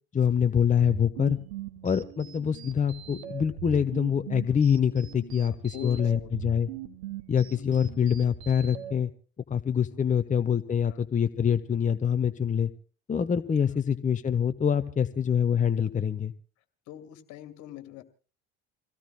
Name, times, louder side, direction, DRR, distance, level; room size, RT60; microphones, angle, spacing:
voice 1, 0.1-1.4 1.8-6.7 7.3-9.1 9.5-12.7 13.1-16.3, left 7 dB, 25° left, 10 dB, 1.0 m, -25 dB
sound 1, 0.7-8.9, right 9 dB, 80° right, 2.1 m, -41 dB
voice 2, 5.4-6.3 9.9-10.3 10.9-11.1 13.6-13.8 16.9-18.0, left 13 dB, 65° left, 9 dB, 2.2 m, -44 dB
27.5 x 17.0 x 2.2 m, 0.40 s
hypercardioid pair, 70°, 32 cm